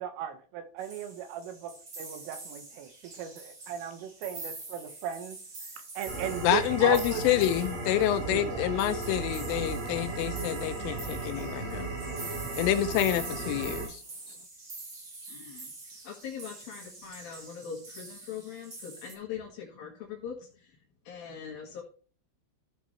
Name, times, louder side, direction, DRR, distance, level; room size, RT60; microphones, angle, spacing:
voice 1, 0.0-5.4 6.0-7.2 8.3-8.6, right 9 dB, 80° right, 3.7 m, -37 dB
sound 1, 0.8-19.1, right 3 dB, 35° right, 2.3 m, -45 dB
sound 2, 6.1-13.9, right 3 dB, 55° right, 5.4 m, -36 dB
voice 2, 6.4-11.9 12.6-14.0, left 12 dB, 80° left, 3.1 m, -27 dB
voice 3, 15.3-15.7 16.0-20.7 21.1-21.8, left 7 dB, 60° left, 2.7 m, -41 dB
14.5 x 6.0 x 3.1 m
omnidirectional pair, 5.9 m